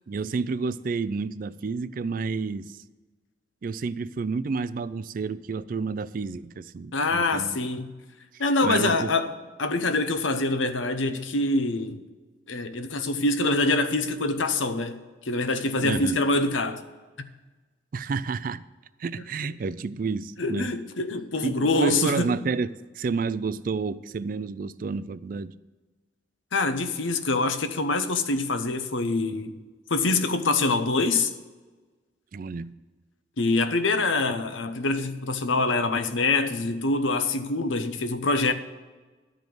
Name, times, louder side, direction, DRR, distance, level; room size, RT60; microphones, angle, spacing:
voice 1, 0.1-2.8 3.6-7.6 8.3-9.1 15.8-16.2 17.9-18.6 19.0-20.7 21.4-22.7 22.9-25.5 32.3-32.7, right 4 dB, 45° right, 0.3 m, -30 dB
voice 2, 6.9-7.9 8.4-9.3 9.6-12.0 12.5-15.0 15.2-16.8 20.4-22.3 26.5-29.5 29.9-31.3 33.4-38.5, left 2 dB, 85° left, 0.9 m, -25 dB
12.0 x 5.2 x 7.7 m
head